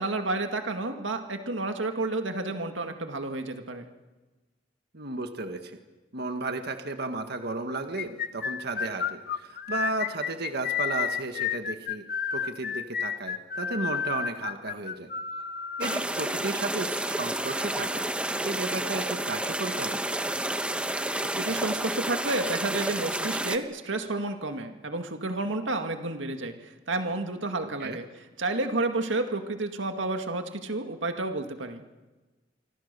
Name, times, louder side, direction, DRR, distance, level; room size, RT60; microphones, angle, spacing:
voice 1, 0.0-3.9 21.4-28.0 28.4-31.8, right 2 dB, 80° right, 6 dB, 2.0 m, -30 dB
voice 2, 4.9-5.8 6.1-12.0 12.3-15.1 15.8-20.0 27.8-28.0, right 3 dB, 60° right, 6 dB, 1.7 m, -34 dB
sound 1, 8.0-16.0, left 7 dB, 50° left, 1.1 m, -31 dB
sound 2, 15.8-23.6, right 1 dB, 5° right, 1.2 m, -30 dB
26.5 x 25.5 x 6.9 m, 1.2 s
head